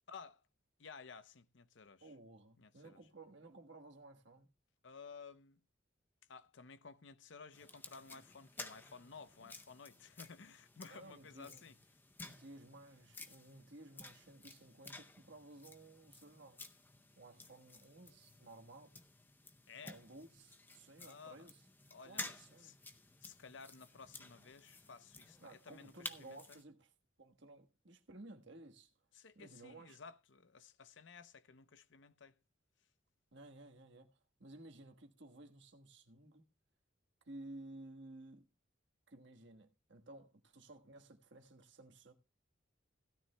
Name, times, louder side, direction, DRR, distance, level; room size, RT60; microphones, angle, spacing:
voice 1, 0.1-0.4 0.8-2.1 2.6-3.0 4.8-5.6 6.3-11.7 19.7-19.9 21.0-21.5 21.9-22.7 23.2-26.6 29.1-32.3, left 5 dB, 65° left, 0.7 m, -55 dB
voice 2, 2.0-4.5 10.9-11.6 12.2-16.6 17.2-18.9 19.8-21.6 22.0-22.8 25.4-26.9 27.2-28.9 29.3-30.0 33.3-36.4 37.2-38.5 39.1-42.1, right 2 dB, 60° right, 1.4 m, -56 dB
sound 1, 7.5-26.6, left 2 dB, 10° left, 0.6 m, -53 dB
16.5 x 12.5 x 2.2 m
head